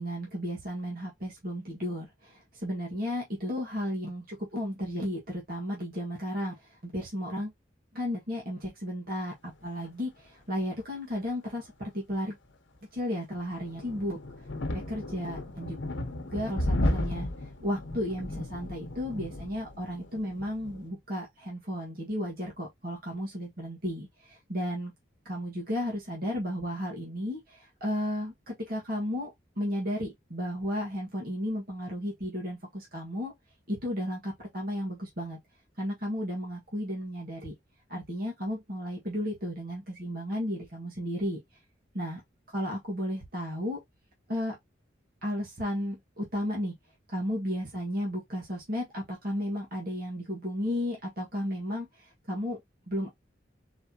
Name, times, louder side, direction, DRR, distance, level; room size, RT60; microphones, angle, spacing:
voice 1, 0.0-6.5 6.8-7.5 7.9-12.4 12.9-14.2 14.7-15.8 16.2-17.3 17.6-24.9 25.3-29.3 29.6-33.3 33.7-35.4 35.8-37.5 37.9-41.4 41.9-42.2 42.5-43.8 44.3-44.6 45.2-46.8 47.1-52.6 52.9-53.1, equal, 50° right, 1.7 m, -34 dB
sound 1, 13.4-20.9, left 1 dB, 80° left, 1.0 m, -34 dB
4.4 x 3.5 x 2.9 m
head